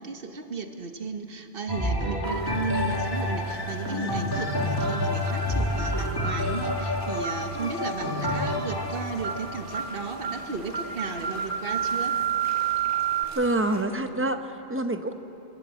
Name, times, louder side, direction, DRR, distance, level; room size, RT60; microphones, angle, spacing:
voice 1, 0.0-12.2, right 5 dB, 55° right, 6 dB, 1.4 m, -34 dB
sound 1, 1.7-11.5 12.1-12.2, left 1 dB, 20° left, 2.2 m, -29 dB
sound 2, 2.2-13.8, left 1 dB, 40° left, 2.3 m, -46 dB
sound 3, 6.2-6.5 7.2-7.4 8.2-8.5 9.2-9.4 9.7-9.9 10.2-10.4 10.7-13.2, right 9 dB, 90° right, 1.6 m, -28 dB
voice 2, 13.3-15.1, right 2 dB, 15° right, 8 dB, 0.7 m, -26 dB
26.5 x 12.5 x 8.5 m, 2.9 s
omnidirectional pair, 1.1 m